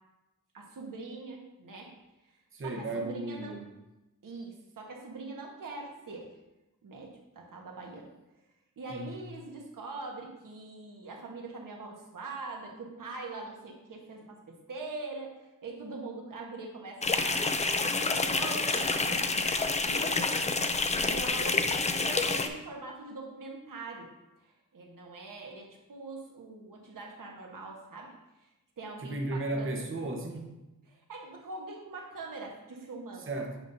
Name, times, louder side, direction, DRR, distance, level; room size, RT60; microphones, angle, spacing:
voice 1, 0.5-1.9 2.2-3.6 4.2-6.3 6.8-8.1 8.8-20.3 20.9-24.1 24.4-28.1 28.4-28.5 28.8-29.7 30.9-33.3, right 3 dB, 70° right, 0 dB, 1.3 m, -43 dB
voice 2, 2.5-3.7 8.9-9.1 29.0-30.6 33.3-33.6, right 2 dB, 40° right, 1 dB, 0.9 m, -35 dB
sound 1, 17.0-22.5, left 3 dB, 20° left, 0.4 m, -28 dB
8.9 x 5.4 x 2.6 m, 1.0 s
wide cardioid pair, 125°, 33 cm